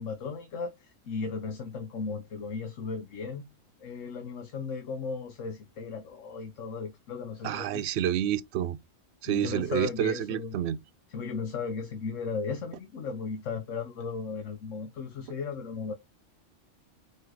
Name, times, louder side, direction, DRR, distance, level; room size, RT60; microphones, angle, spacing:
voice 1, 0.0-3.5 3.8-7.8 9.3-10.6 11.1-15.9, left 5 dB, 75° left, 1.2 m, -36 dB
voice 2, 7.4-8.8 9.2-10.8, right 10 dB, 65° right, 0.8 m, -29 dB
4.7 x 4.3 x 4.6 m
omnidirectional pair, 1.3 m